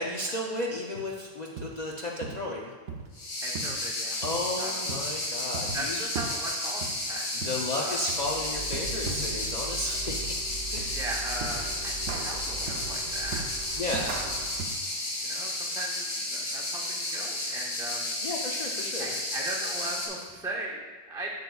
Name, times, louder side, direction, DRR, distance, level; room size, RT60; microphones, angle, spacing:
voice 1, 0.0-2.7 4.2-6.1 7.3-10.4 10.7-11.1 13.8-14.2 18.2-19.1, left 1 dB, 55° left, -1 dB, 0.4 m, -33 dB
sound 1, 0.9-1.1 1.6-1.8 2.2-2.4 2.9-3.1 3.5-3.8 4.2-4.5 4.9-5.1 5.5-5.8 6.2-6.4 6.8-7.7 8.1-8.3 8.7-9.0 9.4-9.6 10.1-10.3 10.8-11.0 11.4-11.6 12.1-12.3 12.7-12.9 13.3-13.5 13.9-14.1 14.6-14.8, right 5 dB, 90° right, 1.1 m, -38 dB
sound 2, 3.1-20.1, left 1 dB, 90° left, 1.9 m, -32 dB
voice 2, 3.4-4.2 4.6-4.8 5.7-7.5 7.8-8.1 10.9-13.5 14.0-14.2 15.2-15.9 16.3-18.1 19.0-20.8 21.1-21.3, right 2 dB, 5° right, -2 dB, 0.4 m, -38 dB
sound 3, 8.2-14.7, right 3 dB, 65° right, 1.0 m, -39 dB
7.8 x 6.8 x 2.3 m, 1.4 s
omnidirectional pair, 1.4 m